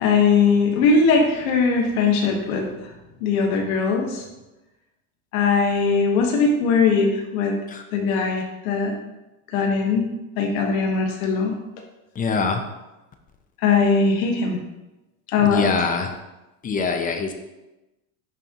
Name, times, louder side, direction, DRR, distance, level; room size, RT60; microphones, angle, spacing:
voice 1, 0.0-2.7 3.2-4.2 5.3-7.6 7.9-8.9 9.5-10.1 10.4-11.6 13.6-14.6 15.3-15.7, left 4 dB, 90° left, 2 dB, 1.4 m, -20 dB
voice 2, 12.2-12.6 15.4-16.1 16.6-17.3, left 4 dB, 20° left, 6 dB, 0.5 m, -23 dB
10.5 x 3.6 x 2.9 m, 1.0 s
cardioid pair, 140°, 40 cm